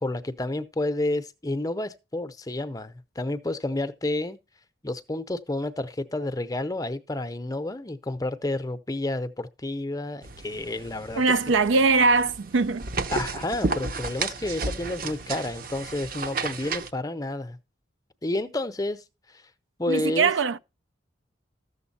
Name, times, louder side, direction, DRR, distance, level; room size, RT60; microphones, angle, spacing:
voice 1, 0.0-4.4 4.8-11.2 13.1-17.6 18.2-19.0 19.8-20.3, left 2 dB, 20° left, 0.6 m, -30 dB
sound 1, 10.2-16.9, right 4 dB, 45° right, 0.7 m, -33 dB
voice 2, 11.2-12.9 19.9-20.6, right 4 dB, 80° right, 0.5 m, -21 dB
13.5 x 7.1 x 4.1 m
head